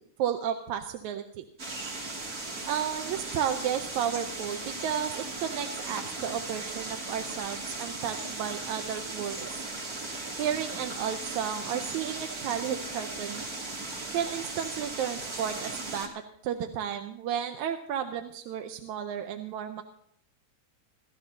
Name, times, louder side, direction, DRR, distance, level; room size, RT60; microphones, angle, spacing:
voice 1, 0.2-1.5 2.7-9.6 10.4-13.4 14.1-19.8, right 9 dB, 85° right, 5 dB, 2.1 m, -33 dB
sound 1, 1.6-16.1, right 2 dB, 30° right, 2.6 m, -37 dB
29.0 x 13.5 x 2.8 m, 0.67 s
omnidirectional pair, 3.3 m